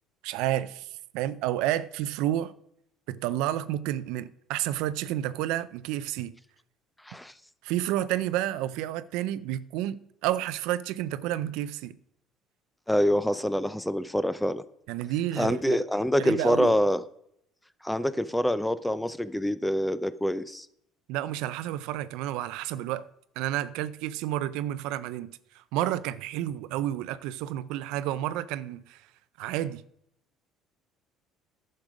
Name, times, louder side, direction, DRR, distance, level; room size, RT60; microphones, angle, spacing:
voice 1, 0.2-0.9 1.1-2.5 3.1-6.3 7.6-12.0 14.9-15.8 16.2-16.7 21.1-23.1 23.4-29.0 29.4-29.8, right 13 dB, 80° right, 0.4 m, -30 dB
voice 2, 12.9-14.6 15.4-17.0 17.8-20.7, equal, 5° left, 0.5 m, -26 dB
10.5 x 6.6 x 4.9 m
supercardioid pair, 95°, 0 cm